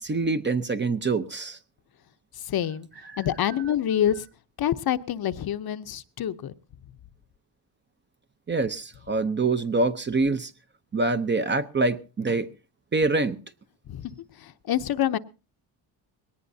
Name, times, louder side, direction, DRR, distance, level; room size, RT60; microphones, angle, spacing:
voice 1, 0.0-1.6 8.5-10.5 10.9-12.5 12.9-13.4, right 3 dB, 25° right, 10 dB, 0.7 m, -25 dB
voice 2, 2.5-2.9 3.2-4.2 4.6-6.5 13.9-15.2, left 10 dB, 50° left, 11 dB, 0.8 m, -27 dB
20.5 x 18.5 x 2.7 m, 0.33 s
cardioid pair, 125°, 47 cm